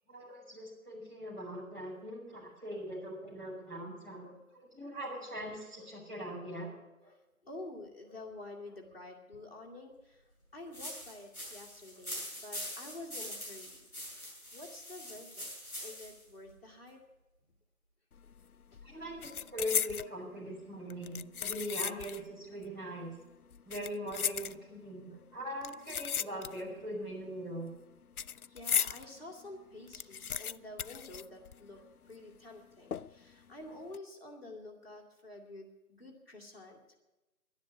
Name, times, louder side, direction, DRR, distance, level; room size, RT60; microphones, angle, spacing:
voice 1, 0.1-4.3 4.5-6.7 18.8-23.1 23.7-27.7, equal, 30° right, -7 dB, 5.7 m, -41 dB
voice 2, 7.0-10.2 10.5-15.5 15.8-17.0 18.7-18.8 24.2-24.6 25.1-25.2 28.5-37.0, left 2 dB, 40° left, -2 dB, 2.8 m, -49 dB
sound 1, 10.7-16.2, equal, 10° left, 5.6 m, -44 dB
sound 2, 18.2-18.4 18.7-20.1 20.9-22.3 22.6-22.7 23.5-24.9 25.6-26.8 27.1-29.0 29.4-29.5 29.7-31.9 32.1-32.2 32.9-33.3 33.7-34.0, left 8 dB, 80° left, 0.5 m, -36 dB
11.5 x 10.5 x 9.4 m, 1.0 s
figure-of-eight pair, 175°, 43 cm